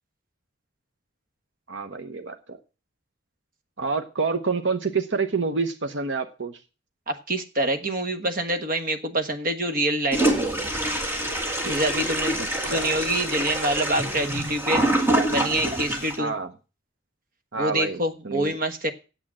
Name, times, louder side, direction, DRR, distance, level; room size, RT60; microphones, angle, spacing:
voice 1, 1.7-2.6 3.8-6.6 12.4-13.0 16.2-16.5 17.5-18.0 18.2-18.6, right 4 dB, 65° right, 7 dB, 0.9 m, -28 dB
voice 2, 7.1-10.5 11.6-14.8 15.3-16.3 17.5-18.9, right 1 dB, 45° right, 8 dB, 1.3 m, -26 dB
Toilet flush, 10.1-16.2, right 1 dB, 10° right, 1.8 m, -25 dB
8.9 x 7.6 x 7.3 m, 0.32 s
head